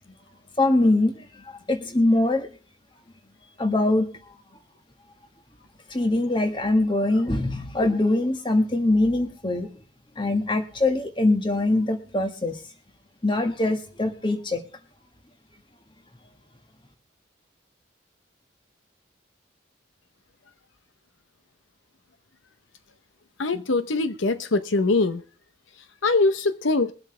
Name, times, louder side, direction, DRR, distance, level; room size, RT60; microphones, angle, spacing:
voice 1, 0.6-2.5 3.6-4.1 5.9-9.7 10.2-12.6 13.2-14.6, left 2 dB, 25° left, 1.6 m, -23 dB
voice 2, 23.4-25.2 26.0-26.9, left 3 dB, 75° left, 0.8 m, -22 dB
22.5 x 7.9 x 3.3 m
head